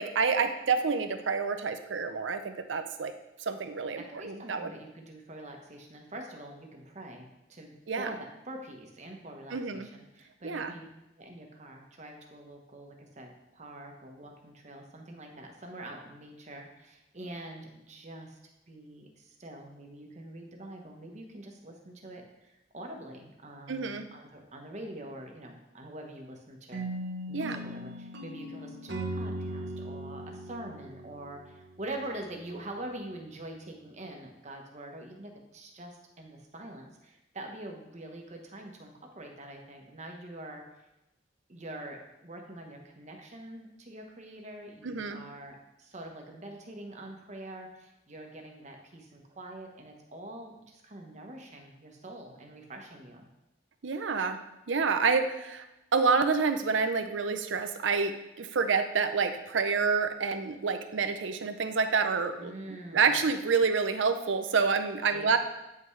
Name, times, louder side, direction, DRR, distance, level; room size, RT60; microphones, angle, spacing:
voice 1, 0.0-3.1 3.4-4.7 7.9-8.1 9.5-9.9 10.4-10.7 23.7-24.1 27.3-27.6 44.8-45.2 53.8-54.4 54.7-55.6 55.9-65.4, right 5 dB, 85° right, 8 dB, 0.6 m, -28 dB
voice 2, 4.1-10.8 11.2-18.4 18.7-26.9 27.3-40.6 41.5-53.3 62.4-63.2 65.1-65.4, right 1 dB, 40° right, 2 dB, 1.1 m, -45 dB
sound 1, 26.7-31.8, right 1 dB, 65° right, 0.9 m, -38 dB
8.8 x 5.6 x 3.2 m, 0.93 s
head